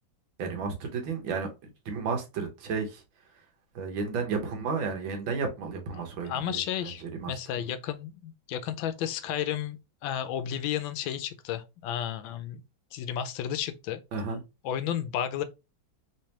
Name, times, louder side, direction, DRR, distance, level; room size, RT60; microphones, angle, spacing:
voice 1, 0.4-1.5 1.8-3.0 3.7-7.3 14.1-14.4, right 5 dB, 75° right, 1.7 m, -32 dB
voice 2, 5.9-12.6 12.9-14.0 14.6-15.4, left 10 dB, 80° left, 1.3 m, -33 dB
3.7 x 3.2 x 2.8 m
omnidirectional pair, 2.2 m